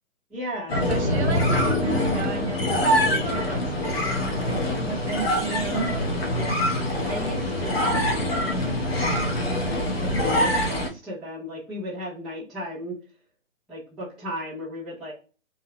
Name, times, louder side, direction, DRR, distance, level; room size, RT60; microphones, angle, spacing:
voice 1, 0.3-0.8 6.3-6.7 7.0-8.4 8.9-9.2 9.6-12.9 13.7-15.1, equal, ahead, 0.3 m, -35 dB
sound 1, 0.7-10.9, left 1 dB, 50° left, 0.8 m, -24 dB
voice 2, 0.9-3.9 4.3-6.0, right 6 dB, 55° right, 0.8 m, -34 dB
2.7 x 2.0 x 2.7 m
hypercardioid pair, 165°, 40 cm